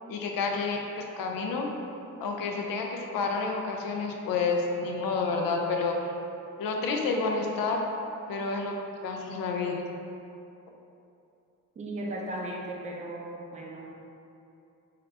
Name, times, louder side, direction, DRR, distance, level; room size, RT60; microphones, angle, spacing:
voice 1, 0.1-1.7 2.2-6.0 6.6-7.8 8.3-8.7 9.0-9.8, left 4 dB, 85° left, 1 dB, 0.5 m, -29 dB
voice 2, 11.8-14.1, right 1 dB, 20° right, -2 dB, 0.4 m, -37 dB
3.7 x 2.7 x 3.3 m, 2.7 s
cardioid pair, 165°, 34 cm